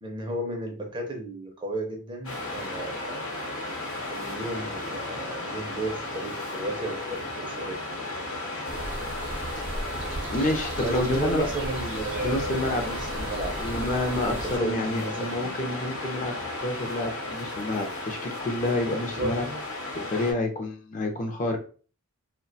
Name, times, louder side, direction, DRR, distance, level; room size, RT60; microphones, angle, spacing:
voice 1, 0.0-3.2 4.1-8.1 10.8-13.5 14.3-15.7 19.0-19.4, right 2 dB, 20° right, 1 dB, 0.4 m, -34 dB
Waves surf, 2.2-20.3, left 2 dB, 65° left, 0.8 m, -34 dB
sound 1, 8.6-14.6, right 2 dB, 60° right, 0.6 m, -36 dB
voice 2, 10.3-11.5 12.2-12.8 13.6-19.5 20.0-21.6, left 1 dB, 35° left, 3 dB, 0.4 m, -29 dB
2.2 x 2.1 x 2.6 m, 0.39 s
head